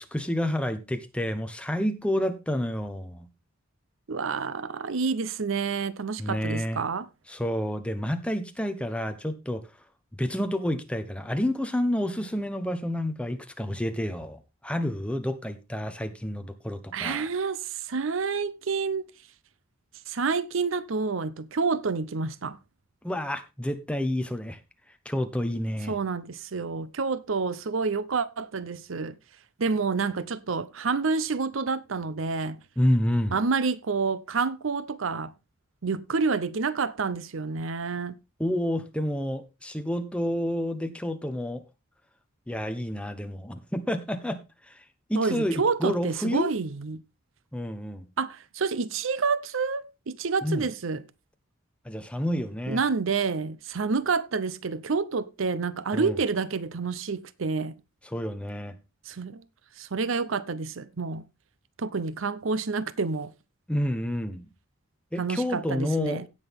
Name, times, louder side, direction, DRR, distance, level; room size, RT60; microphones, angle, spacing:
voice 1, 0.0-3.3 6.2-6.8 7.3-9.6 10.2-17.3 23.0-24.6 25.0-25.9 32.8-33.4 38.4-41.6 42.5-44.4 44.7-44.8 45.1-46.5 47.5-48.1 50.4-50.6 51.8-52.8 55.9-56.2 58.0-58.7 63.7-64.5 65.1-66.2, equal, 5° left, 1.0 m, -29 dB
voice 2, 4.1-7.1 16.9-19.1 20.1-22.6 25.9-29.2 29.6-32.6 33.3-35.3 35.8-38.2 45.2-47.0 48.2-51.0 52.7-57.8 59.1-59.4 59.8-61.2 61.8-63.3 65.2-66.3, right 4 dB, 70° right, 0.7 m, -28 dB
17.0 x 6.3 x 3.5 m
head